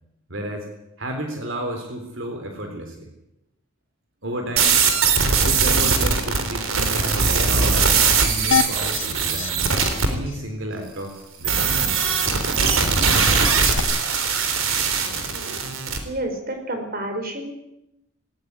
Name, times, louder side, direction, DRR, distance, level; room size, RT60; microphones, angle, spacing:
voice 1, 0.3-0.7 1.0-3.1 4.2-4.8 5.4-9.7 10.1-12.2 13.4-13.9, right 1 dB, 65° right, 4 dB, 3.9 m, -32 dB
sound 1, 4.6-10.1 11.4-16.0, right 5 dB, 85° right, 3.8 m, -20 dB
sound 2, 8.5-9.1 9.4-9.5 9.8-9.9 10.3-10.4 13.7-13.8, left 6 dB, 65° left, 1.4 m, -23 dB
voice 2, 16.0-17.5, right 1 dB, 50° right, 5 dB, 5.1 m, -29 dB
19.0 x 18.5 x 9.6 m, 0.86 s
head